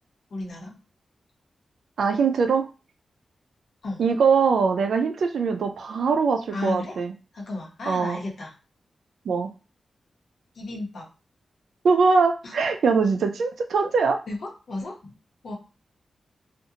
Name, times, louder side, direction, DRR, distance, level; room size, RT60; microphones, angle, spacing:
voice 1, 0.3-0.8 3.8-4.0 6.5-7.0 7.3-8.5 10.5-11.1 12.4-12.5 14.3-15.1 15.4-15.5, left 2 dB, 70° left, -1 dB, 1.0 m, -33 dB
voice 2, 2.0-2.7 4.0-7.1 7.9-8.2 9.3-9.5 11.8-14.2, right 5 dB, 85° right, 6 dB, 0.4 m, -22 dB
2.5 x 2.4 x 2.8 m, 0.32 s
wide cardioid pair, 95°, 0 cm